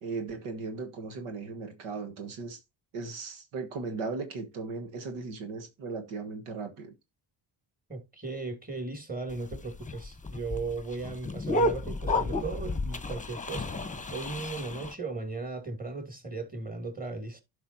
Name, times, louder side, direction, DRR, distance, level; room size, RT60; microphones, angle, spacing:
voice 1, 0.0-2.6 2.9-6.9, right 4 dB, 85° right, 1.5 m, -37 dB
voice 2, 7.9-17.4, right 3 dB, 15° right, 2.6 m, -37 dB
sound 1, 9.3-14.9, left 1 dB, 15° left, 1.0 m, -31 dB
11.5 x 5.4 x 2.7 m
supercardioid pair, 60°, 49 cm